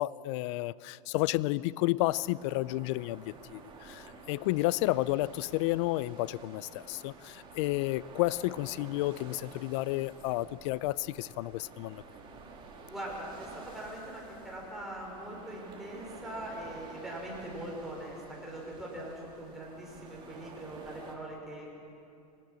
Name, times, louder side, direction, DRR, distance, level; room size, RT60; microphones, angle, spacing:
voice 1, 0.0-12.0, left 18 dB, 45° left, 20 dB, 0.4 m, -31 dB
sound 1, 2.0-21.2, right 3 dB, 25° right, 2.4 m, -50 dB
voice 2, 12.9-21.7, right 1 dB, ahead, -4 dB, 4.8 m, -42 dB
23.5 x 18.5 x 6.4 m, 2.6 s
supercardioid pair, 150°, 21 cm